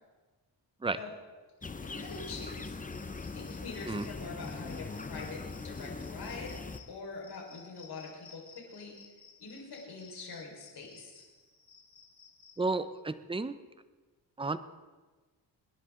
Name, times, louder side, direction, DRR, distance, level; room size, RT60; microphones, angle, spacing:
sound 1, 1.6-6.8, left 3 dB, 20° left, 0.8 m, -41 dB
voice 1, 1.8-2.8 3.2-6.6 6.9-9.1 9.4-11.2, left 4 dB, 65° left, -1 dB, 5.0 m, -44 dB
Cricket, 2.0-12.5, left 5 dB, 45° left, 5.8 m, -57 dB
voice 2, 12.6-13.5 14.4-14.6, right 3 dB, 10° right, 12 dB, 0.7 m, -32 dB
26.5 x 10.5 x 3.8 m, 1.3 s
cardioid pair, 95°, 42 cm